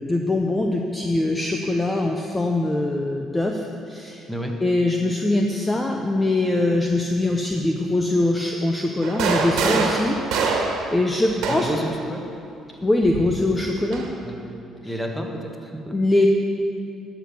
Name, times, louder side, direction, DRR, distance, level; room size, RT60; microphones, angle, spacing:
voice 1, 0.0-4.2 4.6-11.7 12.8-14.1 15.9-16.3, left 2 dB, 15° left, 2 dB, 0.8 m, -22 dB
sound 1, 9.0-11.9 13.0-14.1, right 4 dB, 75° right, 1.6 m, -25 dB
voice 2, 11.4-12.2 14.2-14.6 14.8-15.9, right 1 dB, ahead, 2 dB, 1.6 m, -30 dB
12.0 x 6.1 x 8.6 m, 2.5 s
cardioid pair, 95°, 0 cm